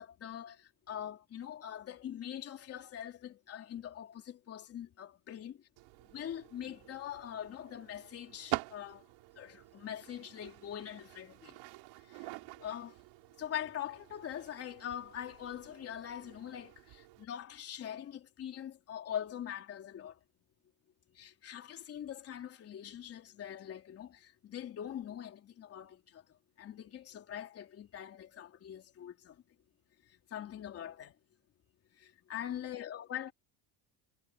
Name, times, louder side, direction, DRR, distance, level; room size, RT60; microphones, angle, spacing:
voice 1, 0.0-5.5 6.1-9.1 9.4-11.6 12.0-13.0 13.4-20.2 21.1-29.4 30.1-31.2 31.9-33.3, left 10 dB, 30° left, 3.5 m, -43 dB
sound 1, 5.8-17.2, right 22 dB, 60° right, 5.1 m, -47 dB
cardioid pair, 170°, 47 cm